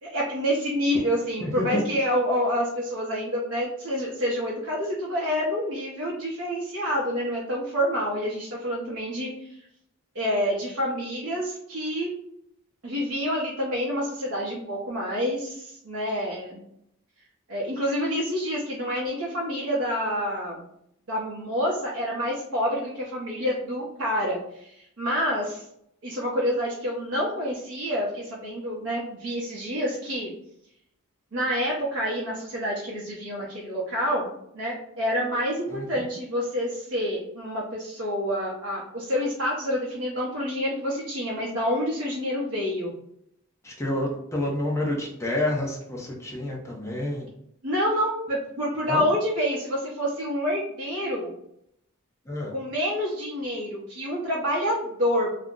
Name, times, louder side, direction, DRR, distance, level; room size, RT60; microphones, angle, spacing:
voice 1, 0.0-9.6 10.1-12.1 12.8-16.6 17.5-20.6 21.1-25.6 26.0-30.3 31.3-42.9 47.6-51.3 52.5-55.3, equal, 60° right, -5 dB, 0.7 m, -28 dB
voice 2, 43.6-47.3 48.9-49.1 52.3-52.5, left 1 dB, 15° left, -2 dB, 0.6 m, -29 dB
2.4 x 2.0 x 3.5 m, 0.75 s
head